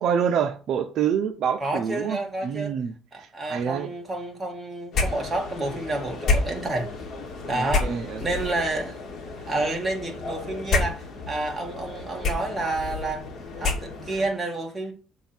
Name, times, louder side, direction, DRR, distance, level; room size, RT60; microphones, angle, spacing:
voice 1, 0.0-3.9 7.5-8.2, right 7 dB, 50° right, 0.6 m, -27 dB
voice 2, 1.6-2.8 3.1-6.9 7.5-9.0 9.5-13.2 13.5-14.9, right 2 dB, 15° right, 1.9 m, -29 dB
sound 1, 4.9-14.3, left 3 dB, 45° left, 2.3 m, -30 dB
7.2 x 3.7 x 6.0 m
cardioid pair, 135°, 0 cm